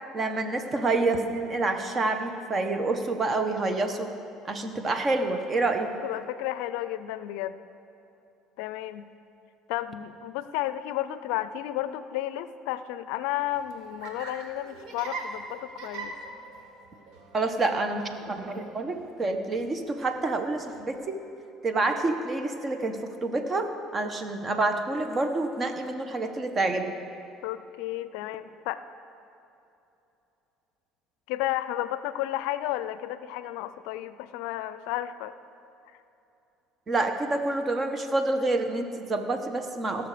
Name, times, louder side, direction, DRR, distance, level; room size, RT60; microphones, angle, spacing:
voice 1, 0.1-4.1 4.5-5.9 17.3-21.2 21.6-26.9 36.9-40.1, right 2 dB, 35° right, 7 dB, 1.2 m, -28 dB
voice 2, 6.0-7.6 8.6-9.1 9.7-16.2 17.6-17.9 27.4-28.8 31.3-35.3, left 13 dB, 80° left, 13 dB, 0.4 m, -32 dB
Laughter, 13.4-21.0, right 3 dB, 70° right, 1.5 m, -43 dB
17.5 x 6.4 x 5.0 m, 2.9 s
supercardioid pair, 85°, 0 cm